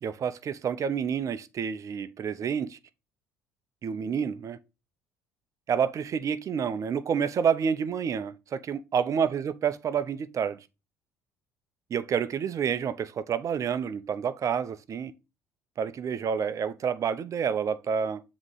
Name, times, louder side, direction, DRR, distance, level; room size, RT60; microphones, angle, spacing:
voice 1, 0.0-2.8 3.8-4.6 5.7-10.6 11.9-15.1 15.8-18.2, right 7 dB, 45° right, 0.7 m, -29 dB
7.4 x 3.1 x 4.8 m
hypercardioid pair, 55°, 8 cm